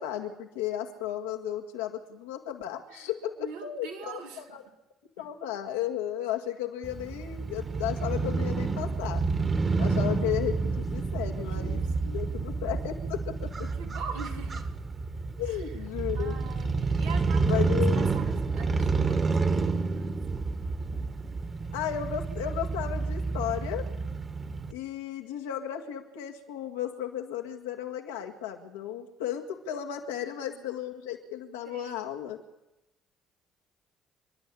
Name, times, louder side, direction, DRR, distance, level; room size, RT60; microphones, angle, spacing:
voice 1, 0.0-4.7 5.2-9.2 9.8-11.8 12.1-13.7 15.4-16.4 17.5-18.1 21.7-23.9 24.7-32.4, left 10 dB, 85° left, 2 dB, 2.0 m, -34 dB
voice 2, 3.4-4.4 5.2-5.3 11.4-12.2 13.5-14.6 16.2-17.7 17.9-19.9 30.2-30.6 31.6-32.0, right 6 dB, 85° right, 0 dB, 3.3 m, -43 dB
Crow / Motorcycle, 6.8-24.7, right 4 dB, 35° right, 2.3 m, -29 dB
29.5 x 11.5 x 8.5 m, 0.99 s
hypercardioid pair, 50°, 0 cm